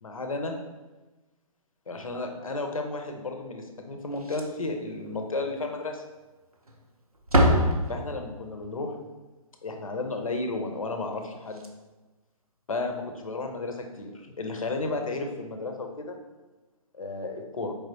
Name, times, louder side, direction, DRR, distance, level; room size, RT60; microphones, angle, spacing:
voice 1, 0.0-0.5 1.9-6.0 7.9-9.0 9.6-11.6 12.7-16.2 16.9-17.7, left 3 dB, 70° left, 4 dB, 0.7 m, -33 dB
Slam, 4.1-4.8 5.1-5.2 5.6-5.7 6.5-6.9 7.1-8.4 11.1-11.2 11.5-11.7 13.2-13.3, equal, 90° right, 0.6 m, -25 dB
4.6 x 3.4 x 2.8 m, 1.2 s
figure-of-eight pair, 125°, 18 cm